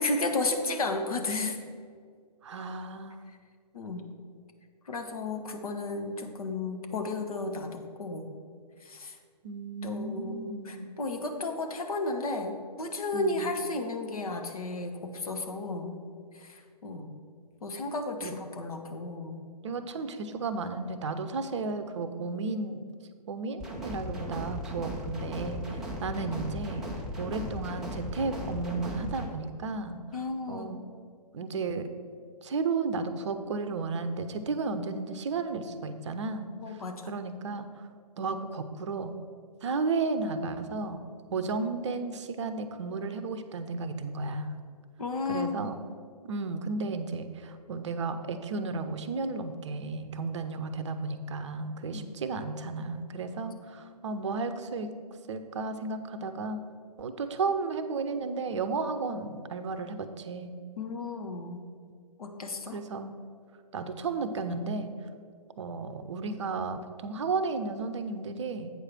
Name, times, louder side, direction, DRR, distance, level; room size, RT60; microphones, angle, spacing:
voice 1, 0.0-1.6 3.7-4.1 4.9-8.3 8.8-9.2 9.8-16.0 16.3-17.1 17.6-19.4 30.1-30.8 36.6-37.0 45.0-45.7 51.9-52.1 60.8-61.7 62.2-62.8, left 2 dB, 60° left, 4 dB, 1.2 m, -33 dB
voice 2, 2.4-3.2 9.4-10.9 13.1-13.5 18.2-18.3 19.6-22.8 23.3-25.6 26.0-30.0 30.5-30.8 31.3-31.9 32.4-36.8 37.1-37.8 38.2-39.2 39.6-41.0 41.3-44.5 45.3-45.8 46.2-54.9 55.3-56.6 57.0-60.5 62.7-63.1 63.7-64.9 65.6-68.7, right 4 dB, 45° right, 9 dB, 0.6 m, -33 dB
sound 1, 23.6-29.3, left 1 dB, ahead, 0.3 m, -37 dB
8.3 x 4.8 x 5.9 m, 2.1 s
figure-of-eight pair, 130°, 21 cm